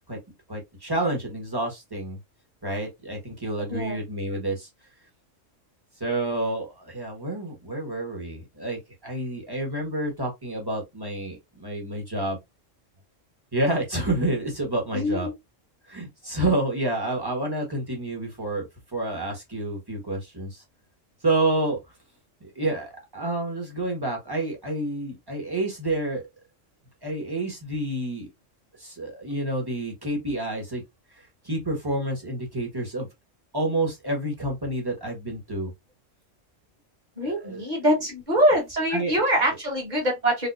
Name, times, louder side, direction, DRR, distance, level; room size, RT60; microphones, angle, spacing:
voice 1, 0.5-2.2 2.6-4.7 6.0-12.4 13.5-15.3 15.9-18.6 18.9-20.6 21.2-21.8 22.4-26.2 27.0-28.3 28.8-30.8 31.4-33.1 33.5-35.7 37.2-37.6 38.9-39.2, right 2 dB, 20° right, 1.5 m, -29 dB
voice 2, 3.7-4.0 14.9-15.3 37.2-40.5, equal, 35° right, 2.0 m, -24 dB
3.7 x 3.4 x 2.6 m
omnidirectional pair, 1.3 m